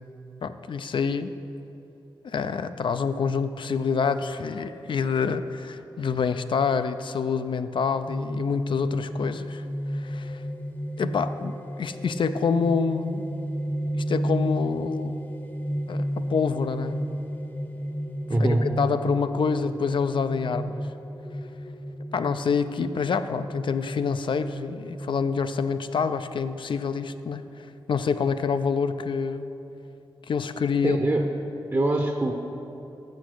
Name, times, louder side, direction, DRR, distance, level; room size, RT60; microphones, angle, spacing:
voice 1, 0.4-1.3 2.2-9.6 9.9-10.4 11.0-13.3 14.0-15.3 15.9-17.0 18.4-20.9 22.1-29.5 30.3-31.0, left 5 dB, 60° left, 11 dB, 0.4 m, -27 dB
sound 1, 8.1-27.2, equal, 20° left, 0.7 m, -33 dB
voice 2, 18.3-18.7 30.8-31.3 31.7-32.3, right 2 dB, 30° right, 2 dB, 0.8 m, -23 dB
7.2 x 6.4 x 6.4 m, 2.9 s
cardioid pair, 50°, 9 cm